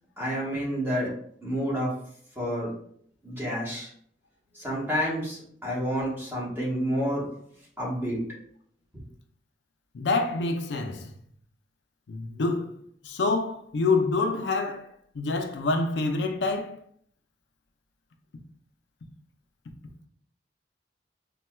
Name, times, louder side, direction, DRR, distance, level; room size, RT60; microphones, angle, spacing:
voice 1, 0.2-1.1 1.4-1.9 2.4-2.7 3.2-3.9 4.5-7.2 7.8-8.2, equal, 15° right, 1.1 m, -29 dB
voice 2, 9.9-11.1 12.1-12.7 13.0-16.8, left 3 dB, 85° left, 0.5 m, -27 dB
4.2 x 2.2 x 2.2 m
head